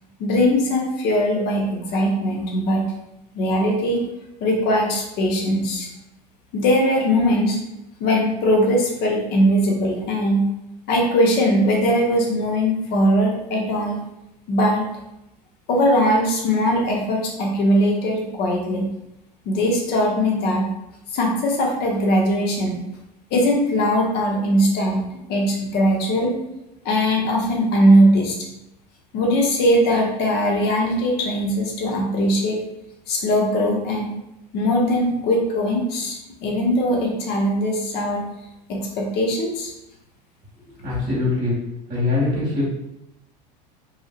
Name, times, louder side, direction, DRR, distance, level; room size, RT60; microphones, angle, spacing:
voice 1, 0.2-2.9 3.3-4.0 4.4-5.9 6.5-7.6 8.0-10.4 10.9-14.0 14.5-14.8 15.7-18.9 19.4-20.7 21.1-22.8 23.3-25.0 25.3-26.3 26.8-28.4 29.1-32.6 33.1-34.1 34.5-38.2 38.7-39.7, equal, 50° left, -1 dB, 0.8 m, -20 dB
voice 2, 40.7-41.5 41.9-42.6, left 3 dB, 45° right, -7 dB, 1.1 m, -23 dB
3.2 x 2.6 x 2.4 m, 0.88 s
hypercardioid pair, 90°, 21 cm